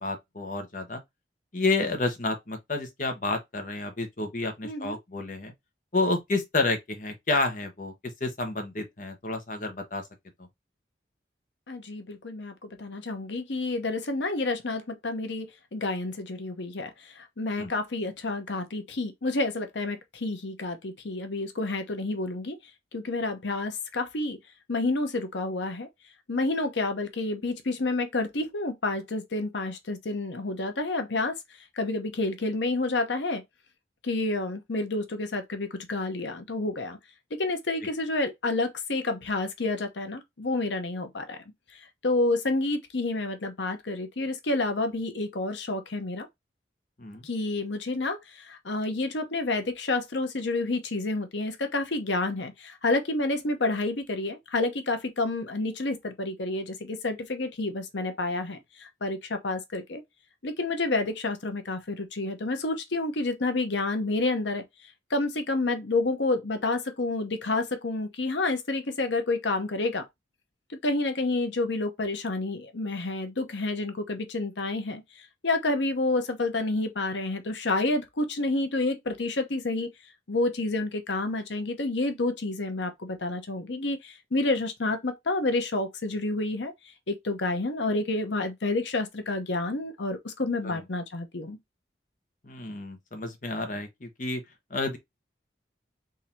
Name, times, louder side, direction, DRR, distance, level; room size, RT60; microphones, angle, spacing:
voice 1, 0.0-1.0 1.5-5.5 5.9-7.9 8.2-10.0 17.6-17.7 47.0-47.3 90.6-90.8 92.4-94.4 94.7-95.0, left 2 dB, 45° left, 1.1 m, -30 dB
voice 2, 4.6-5.0 11.7-22.6 22.9-24.4 24.7-25.9 26.3-31.4 31.7-33.4 34.0-37.0 37.3-41.4 41.7-46.3 47.2-60.0 60.4-70.1 70.7-79.9 80.3-86.7 87.1-91.6, left 2 dB, 80° left, 1.0 m, -29 dB
3.8 x 2.8 x 4.4 m
head